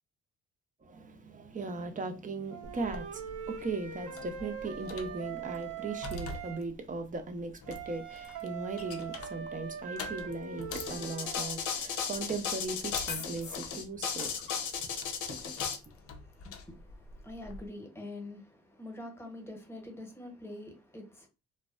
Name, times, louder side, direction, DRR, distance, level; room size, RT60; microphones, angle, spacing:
voice 1, 0.8-14.6 15.3-15.4, right 3 dB, 25° right, 0.5 m, -38 dB
Wind instrument woodwind instrument, 2.5-6.6 7.7-11.6, right 7 dB, 90° right, 0.8 m, -42 dB
sound 1, 2.6-17.7, left 3 dB, 50° left, 0.5 m, -47 dB
sound 2, 10.7-15.8, left 6 dB, 80° left, 0.7 m, -35 dB
voice 2, 15.7-21.3, left 1 dB, 10° left, 0.9 m, -46 dB
2.5 x 2.1 x 2.4 m
cardioid pair, 90°, 30 cm